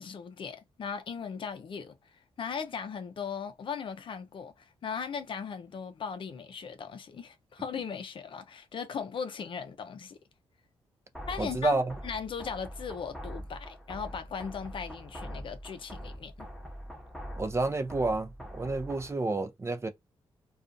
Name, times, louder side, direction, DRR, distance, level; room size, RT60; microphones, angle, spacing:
voice 1, 0.0-2.1 2.4-10.2 11.3-16.5, left 6 dB, 60° left, 0.5 m, -38 dB
sound 1, 11.1-19.1, equal, ahead, 1.0 m, -43 dB
voice 2, 11.4-11.9 17.4-19.9, right 2 dB, 25° right, 0.5 m, -29 dB
2.4 x 2.4 x 2.5 m
cardioid pair, 70°, 10 cm